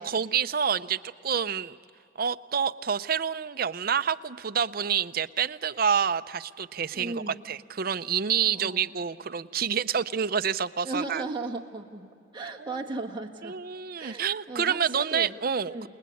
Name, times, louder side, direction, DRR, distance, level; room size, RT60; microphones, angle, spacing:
voice 1, 0.0-1.8 2.2-11.2 12.7-12.8 13.4-15.9, right 7 dB, 50° right, 12 dB, 0.6 m, -28 dB
voice 2, 6.9-7.4 8.5-8.9 10.8-13.6 14.0-15.4 15.7-15.9, right 3 dB, 25° right, 1 dB, 1.7 m, -37 dB
29.5 x 20.5 x 8.5 m, 2.6 s
head